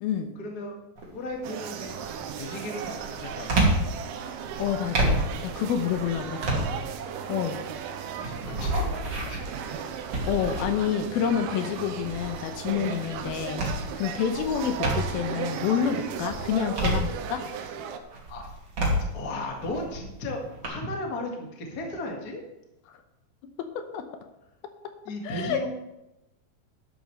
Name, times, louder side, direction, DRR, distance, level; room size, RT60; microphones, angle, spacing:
voice 1, 0.3-0.7 1.1-2.0 2.3-3.8 8.2-9.5 18.3-18.5 19.1-22.4 25.0-25.7, left 1 dB, 40° left, 0 dB, 1.5 m, -35 dB
sound 1, 1.0-1.4 1.8-15.4 15.8-17.7 18.1-20.7, right 1 dB, 40° right, 3.1 m, -30 dB
sound 2, 1.4-18.0, right 7 dB, 90° right, 2.7 m, -36 dB
voice 2, 4.6-6.7 7.3-7.6 10.3-17.4 22.9-23.0 23.6-24.0 25.2-25.7, left 8 dB, 80° left, 7 dB, 2.6 m, -28 dB
12.0 x 11.5 x 3.2 m, 0.92 s
omnidirectional pair, 4.4 m